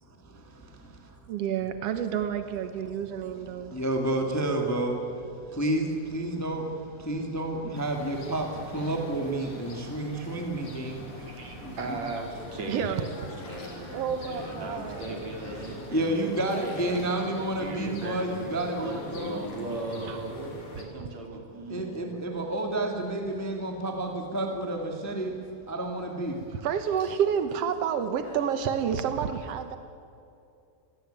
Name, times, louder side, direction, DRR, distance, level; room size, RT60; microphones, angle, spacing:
voice 1, 0.2-1.2 3.5-12.0 14.8-15.0 15.5-19.4 21.7-26.6, right 1 dB, 5° left, 1.8 m, -31 dB
voice 2, 1.3-3.8 12.7-13.1 13.9-15.2 16.5-17.1 20.0-20.2 26.5-29.8, right 8 dB, 80° right, 1.4 m, -30 dB
sound 1, 7.7-20.8, left 1 dB, 35° left, 3.8 m, -44 dB
voice 3, 11.2-22.2, right 2 dB, 50° right, 4.2 m, -38 dB
sound 2, 13.2-14.8 16.3-17.1 17.5-17.7 18.1-18.2 18.7-18.8 19.0-19.8 20.2-20.5 20.8-21.0 22.8-22.9 23.4-23.7 23.9-24.4 24.8-24.9 26.3-28.6, left 3 dB, 90° left, 6.2 m, -53 dB
26.0 x 17.5 x 9.1 m
omnidirectional pair, 4.3 m